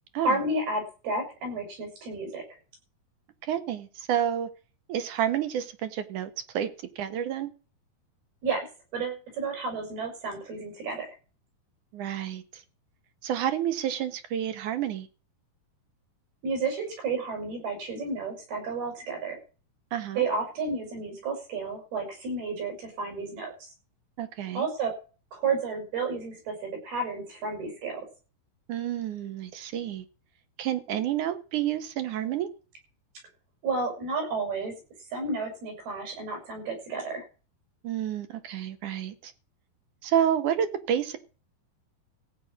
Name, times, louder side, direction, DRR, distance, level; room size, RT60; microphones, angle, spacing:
voice 1, 0.2-2.4 8.4-8.7 8.9-11.1 16.4-19.4 20.1-23.7 24.5-24.9 25.3-28.1 33.6-34.7 35.1-37.2, right 3 dB, 85° right, 3 dB, 8.5 m, -31 dB
voice 2, 3.5-4.5 4.9-6.7 7.0-7.5 11.9-12.6 13.2-15.1 19.9-20.2 24.2-24.7 28.7-30.1 30.6-32.5 37.8-39.3 40.0-41.2, right 10 dB, 65° right, 10 dB, 2.4 m, -29 dB
15.5 x 5.7 x 9.2 m, 0.35 s
omnidirectional pair, 4.3 m